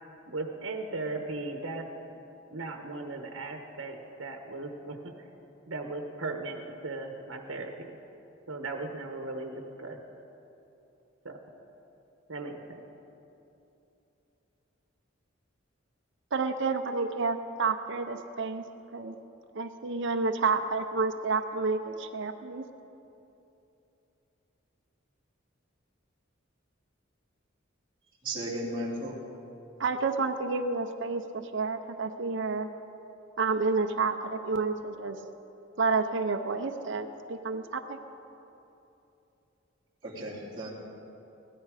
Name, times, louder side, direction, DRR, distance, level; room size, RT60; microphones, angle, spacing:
voice 1, 0.3-1.9 2.1-2.2 2.5-5.1 5.7-7.7 8.5-10.0 11.2-11.4 12.3-12.8, right 2 dB, 80° right, 4 dB, 1.1 m, -37 dB
voice 2, 16.3-18.6 18.9-19.1 19.5-22.6 29.8-32.7 33.4-35.2 35.8-38.0, right 4 dB, 65° right, 6 dB, 0.7 m, -30 dB
voice 3, 28.2-29.1 40.0-40.7, right 1 dB, 25° right, -10 dB, 2.7 m, -35 dB
16.5 x 12.5 x 5.0 m, 2.9 s
head